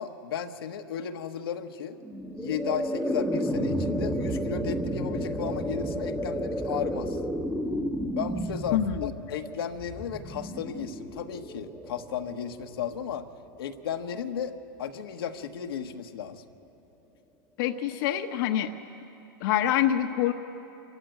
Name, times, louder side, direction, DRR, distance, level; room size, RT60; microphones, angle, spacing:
voice 1, 0.0-2.0 2.4-7.2 8.2-13.3 13.6-16.4, left 8 dB, 75° left, 5 dB, 1.2 m, -34 dB
sound 1, 2.0-13.2, equal, ahead, 1.1 m, -32 dB
voice 2, 8.7-9.1 17.6-18.7 19.4-20.3, left 11 dB, 60° left, 6 dB, 1.0 m, -25 dB
26.5 x 14.5 x 9.2 m, 2.9 s
hypercardioid pair, 115°, 12 cm